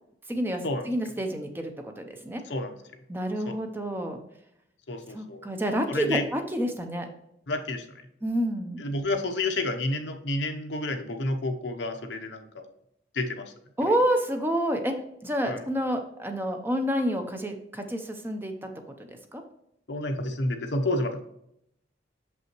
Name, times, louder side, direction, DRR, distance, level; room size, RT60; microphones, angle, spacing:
voice 1, 0.3-2.4 3.1-4.2 5.1-7.1 8.2-8.8 13.8-14.9 15.2-18.7 19.3-19.4, equal, 10° right, 5 dB, 0.7 m, -28 dB
voice 2, 4.9-5.4 5.9-6.2 7.5-8.0 8.8-12.7 13.1-13.5 13.9-14.0 15.5-15.6 19.9-21.2, left 2 dB, 75° left, 5 dB, 0.8 m, -30 dB
6.7 x 5.4 x 3.1 m, 0.76 s
head